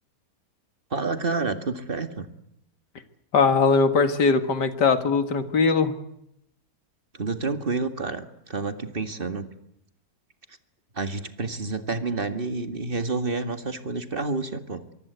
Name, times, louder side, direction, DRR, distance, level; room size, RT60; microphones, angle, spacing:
voice 1, 0.9-2.3 7.1-9.5 10.9-14.8, right 3 dB, 30° right, 8 dB, 2.1 m, -29 dB
voice 2, 3.3-5.9, left 4 dB, 75° left, 9 dB, 2.5 m, -20 dB
24.0 x 23.5 x 8.2 m, 0.79 s
omnidirectional pair, 1.8 m